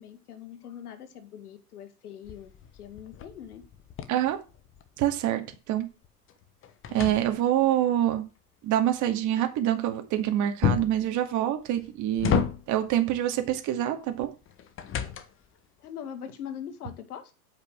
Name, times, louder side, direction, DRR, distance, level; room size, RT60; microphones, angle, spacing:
voice 1, 0.0-2.5 2.7-3.6 9.4-9.5 15.8-17.3, left 9 dB, 75° left, 10 dB, 2.0 m, -42 dB
sound 1, 2.2-5.1 5.5-7.8 10.6-11.1 11.7-12.9 14.2-15.6, left 8 dB, 25° left, 1.3 m, -31 dB
voice 2, 5.0-5.4 5.7-5.9 6.9-8.2 8.6-14.3, right 12 dB, 40° right, 6 dB, 2.3 m, -26 dB
8.5 x 6.0 x 7.5 m, 0.31 s
hypercardioid pair, 105°, 46 cm